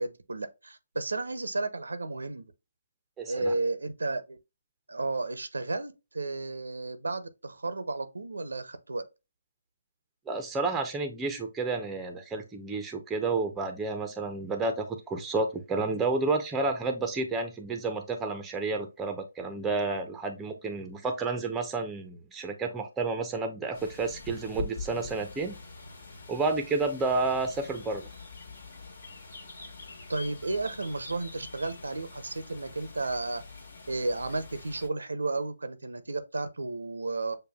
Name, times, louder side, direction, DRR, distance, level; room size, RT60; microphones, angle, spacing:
voice 1, 0.0-2.5 3.3-4.4 4.9-9.0 30.1-33.4 33.9-37.4, right 2 dB, 80° right, 0.6 m, -33 dB
voice 2, 3.2-3.5 10.3-25.5 26.3-28.1, right 3 dB, 10° right, 0.6 m, -30 dB
sound 1, 23.7-34.9, left 3 dB, 60° left, 1.4 m, -44 dB
6.6 x 2.2 x 2.2 m
figure-of-eight pair, 150°, 0 cm